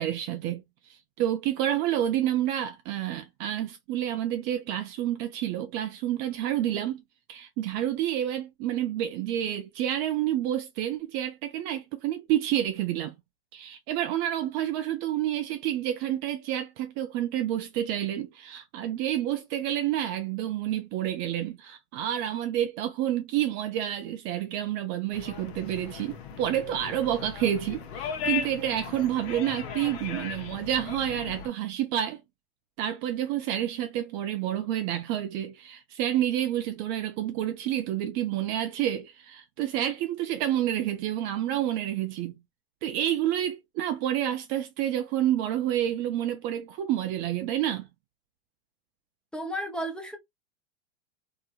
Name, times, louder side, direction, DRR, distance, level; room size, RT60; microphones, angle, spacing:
voice 1, 0.0-7.0 7.3-13.1 13.5-32.2 32.8-42.3 42.8-47.9, right 11 dB, 35° right, 0.4 m, -29 dB
sound 1, 25.1-31.5, left 7 dB, 60° left, 0.9 m, -37 dB
voice 2, 49.3-50.2, equal, 5° left, 0.7 m, -33 dB
2.8 x 2.8 x 2.4 m
hypercardioid pair, 120°, 34 cm